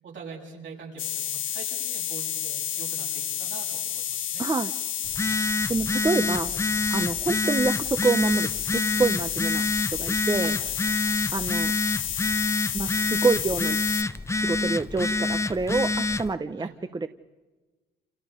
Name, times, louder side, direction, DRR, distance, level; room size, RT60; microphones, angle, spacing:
voice 1, 0.0-4.4 5.3-5.4 6.9-7.2 10.4-10.8 11.0-11.2 16.5-16.7, right 5 dB, 70° right, -1 dB, 8.0 m, -44 dB
sound 1, 1.0-14.0, left 10 dB, 75° left, 1.7 m, -30 dB
voice 2, 4.4-4.7 5.7-6.6 6.9-9.6 10.0-10.5 11.3-11.7 12.7-13.8 14.3-17.1, right 3 dB, 20° right, 10 dB, 0.9 m, -27 dB
Telephone, 5.0-16.3, left 3 dB, 15° left, 0.8 m, -27 dB
28.5 x 28.5 x 5.2 m, 1.2 s
cardioid pair, 90°, 20 cm